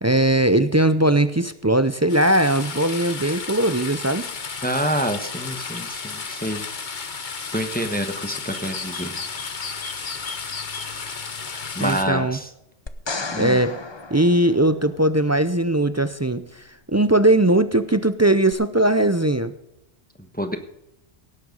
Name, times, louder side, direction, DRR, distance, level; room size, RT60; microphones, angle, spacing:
voice 1, 0.0-4.3 11.8-12.4 13.4-13.8 14.1-19.5, right 1 dB, 25° right, 12 dB, 0.3 m, -19 dB
sound 1, 2.1-12.0, left 5 dB, 45° left, 1.2 m, -33 dB
voice 2, 4.6-6.6 7.5-9.1 11.5-12.5 13.3-13.6 20.2-20.6, right 1 dB, 10° left, 7 dB, 1.1 m, -27 dB
sound 2, 12.9-15.2 18.5-18.6, left 3 dB, 25° left, 0.7 m, -34 dB
17.5 x 7.9 x 5.3 m, 0.82 s
omnidirectional pair, 1.2 m